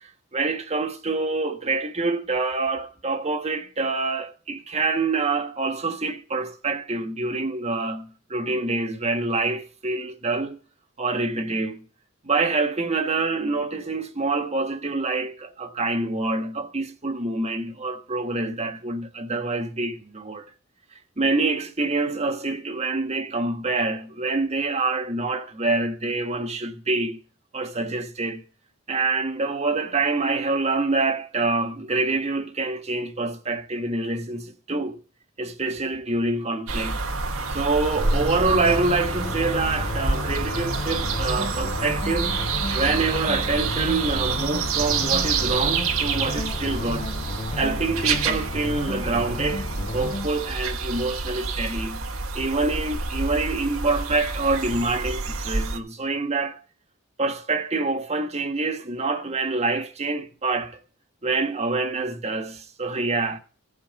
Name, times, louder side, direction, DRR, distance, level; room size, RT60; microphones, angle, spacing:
voice 1, 0.3-10.6 11.0-11.8 12.2-20.4 21.2-27.2 27.5-28.4 28.9-35.0 35.4-37.0 37.5-42.5 42.7-47.2 47.6-49.7 49.9-52.1 52.3-56.6 57.2-60.8 61.2-63.4, right 3 dB, 30° right, 1.6 m, -26 dB
sound 1, 36.7-55.8, right 4 dB, 75° right, 1.6 m, -28 dB
sound 2, 37.9-50.3, left 2 dB, 30° left, 0.6 m, -33 dB
16.0 x 5.5 x 9.3 m
head